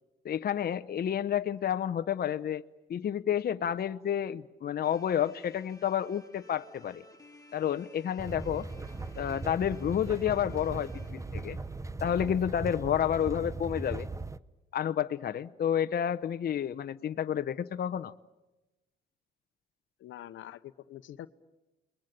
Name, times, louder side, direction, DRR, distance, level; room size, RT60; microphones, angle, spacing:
voice 1, 0.2-2.6 2.9-7.0 7.5-8.7 9.2-11.6 12.0-14.1 14.7-18.1, left 9 dB, 50° left, 10 dB, 0.9 m, -30 dB
sound 1, 4.8-12.9, left 2 dB, 15° left, 3.3 m, -57 dB
sound 2, 8.2-14.4, right 3 dB, 15° right, 0.9 m, -39 dB
voice 2, 20.0-21.3, left 12 dB, 75° left, 13 dB, 1.0 m, -45 dB
30.0 x 21.5 x 9.1 m, 1.0 s
cardioid pair, 90°, 20 cm